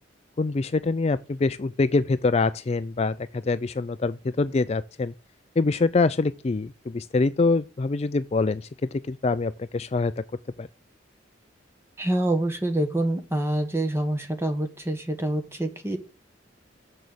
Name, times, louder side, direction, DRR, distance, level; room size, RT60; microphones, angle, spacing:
voice 1, 0.4-5.1 5.6-10.2 10.6-10.7, left 3 dB, 35° left, 0.4 m, -25 dB
voice 2, 12.0-16.0, right 1 dB, 15° right, 1.5 m, -26 dB
7.6 x 6.3 x 6.8 m
head